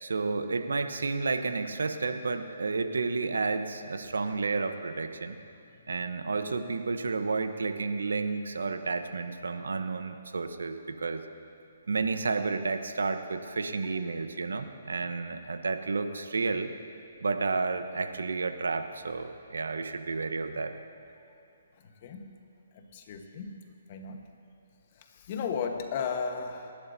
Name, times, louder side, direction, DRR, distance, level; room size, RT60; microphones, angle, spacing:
voice 1, 0.0-5.4 5.9-11.2 11.9-16.7 17.2-20.7, right 4 dB, 85° right, 8 dB, 1.0 m, -31 dB
voice 2, 22.0-22.3 22.7-23.6 23.9-24.2 25.1-26.7, left 6 dB, 40° left, 4 dB, 1.3 m, -35 dB
29.5 x 11.5 x 2.8 m, 2.6 s
hypercardioid pair, 150°, 0 cm